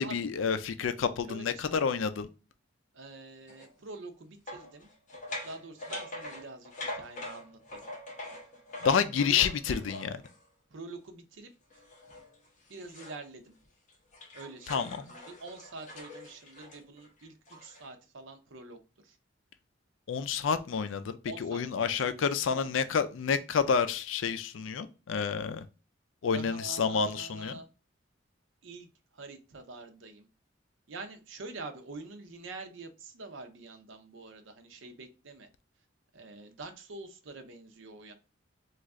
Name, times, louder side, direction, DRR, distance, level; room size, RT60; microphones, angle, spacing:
voice 1, 0.0-2.3 8.8-10.2 14.7-15.0 20.1-25.6 26.2-27.5, left 6 dB, 90° left, 0.4 m, -29 dB
voice 2, 1.3-2.0 2.9-4.9 5.4-7.8 8.8-8.9 9.3-9.5 10.7-11.5 12.7-13.5 14.3-19.2 21.3-21.6 22.5-22.6 26.3-27.7 28.6-28.9 29.1-30.3 30.9-35.5 36.1-38.1, right 3 dB, 80° right, 0.6 m, -46 dB
sound 1, 3.5-3.7 4.5-10.4 11.7-13.3 13.6-17.9, left 1 dB, 40° left, 1.0 m, -43 dB
3.1 x 2.4 x 3.5 m
head